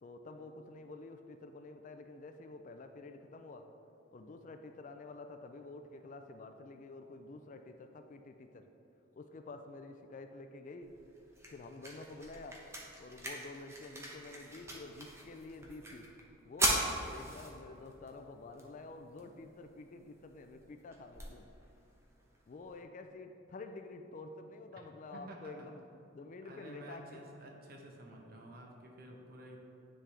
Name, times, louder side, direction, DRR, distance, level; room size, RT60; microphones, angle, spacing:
voice 1, 0.0-3.7 4.1-8.7 9.1-10.9 11.5-12.6 13.0-16.1 16.4-21.5 22.5-25.8 26.1-27.2, left 3 dB, 40° left, 7 dB, 0.3 m, -49 dB
sound 1, 10.8-22.8, right 1 dB, 15° right, 0.8 m, -41 dB
voice 2, 25.1-25.7 26.4-29.6, right 1 dB, 50° right, 0 dB, 0.9 m, -51 dB
9.9 x 3.8 x 3.3 m, 2.9 s
head